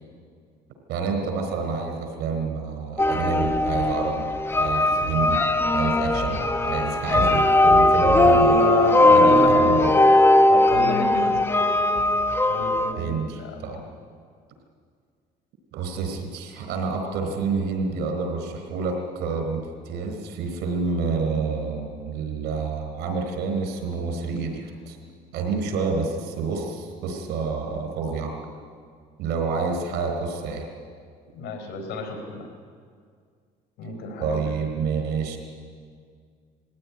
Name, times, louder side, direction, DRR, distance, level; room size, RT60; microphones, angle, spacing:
voice 1, 0.9-4.3 4.5-5.4 5.7-8.6 9.1-9.9 13.0-13.8 15.7-25.0 25.3-28.3 29.2-30.7 34.2-35.4, right 4 dB, 85° right, 5 dB, 4.2 m, -28 dB
sound 1, 3.0-12.9, left 1 dB, 15° left, 1.4 m, -19 dB
voice 2, 8.1-9.7 10.5-11.5 12.5-13.6 31.3-32.5 33.8-34.3, left 5 dB, 85° left, 5 dB, 4.6 m, -30 dB
21.0 x 15.5 x 9.9 m, 2.1 s
cardioid pair, 110°, 17 cm